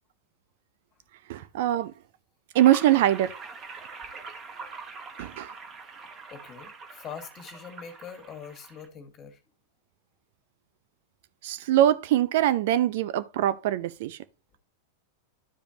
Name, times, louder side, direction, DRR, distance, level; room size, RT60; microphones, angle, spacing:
voice 1, 1.3-1.9 2.5-3.3 5.2-5.5 11.4-14.2, right 12 dB, 55° right, 0.5 m, -23 dB
sound 1, 2.5-8.9, right 4 dB, 25° right, 1.6 m, -43 dB
voice 2, 6.3-9.4, left 7 dB, 30° left, 2.0 m, -43 dB
12.0 x 5.0 x 2.9 m
figure-of-eight pair, 90°, 0 cm